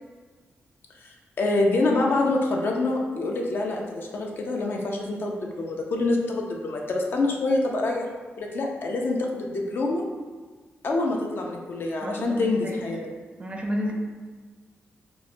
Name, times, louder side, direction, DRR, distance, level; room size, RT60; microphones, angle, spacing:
voice 1, 1.0-8.1 8.4-10.1 10.8-13.1, left 2 dB, 55° left, 0 dB, 0.4 m, -26 dB
voice 2, 12.0-12.8 13.4-13.9, equal, 25° right, 0 dB, 0.4 m, -31 dB
3.0 x 2.0 x 2.5 m, 1.4 s
cardioid pair, 105°, 4 cm